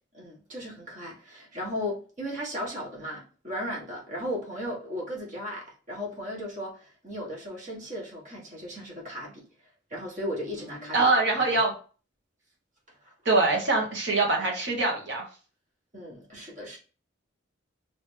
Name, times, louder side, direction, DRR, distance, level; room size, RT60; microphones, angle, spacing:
voice 1, 0.1-9.4 9.9-11.1 13.0-13.1 15.9-16.8, equal, 40° right, 1.4 m, -36 dB
voice 2, 10.9-11.7 13.2-15.2, right 3 dB, 60° right, 1.4 m, -23 dB
3.3 x 3.0 x 3.3 m
head